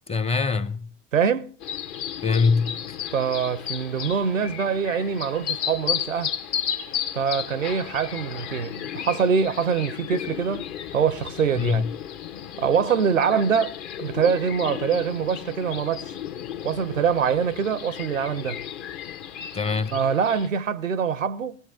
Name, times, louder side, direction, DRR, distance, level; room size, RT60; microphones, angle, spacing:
voice 1, 0.1-0.9 2.2-3.0 11.6-11.9 19.5-20.0, left 4 dB, 15° left, 0.8 m, -23 dB
voice 2, 1.1-1.5 3.1-6.4 7.1-11.8 12.6-16.1 16.6-18.6 19.9-21.6, right 6 dB, 85° right, 0.6 m, -24 dB
sound 1, 1.6-20.5, left 9 dB, 45° left, 1.3 m, -34 dB
19.5 x 17.5 x 3.5 m
figure-of-eight pair, 80°, 38 cm